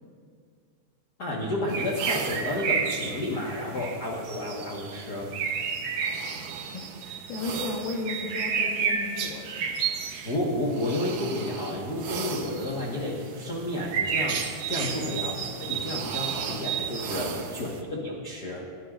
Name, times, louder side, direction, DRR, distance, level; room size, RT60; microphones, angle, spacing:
voice 1, 1.2-5.3 10.2-18.6, left 1 dB, 55° left, -3 dB, 1.1 m, -31 dB
sound 1, 1.7-17.8, right 6 dB, 75° right, 1.5 m, -32 dB
voice 2, 6.7-10.0 14.8-15.8 17.3-17.7, left 3 dB, 85° left, -1 dB, 2.9 m, -37 dB
28.5 x 11.0 x 2.5 m, 2.1 s
omnidirectional pair, 4.1 m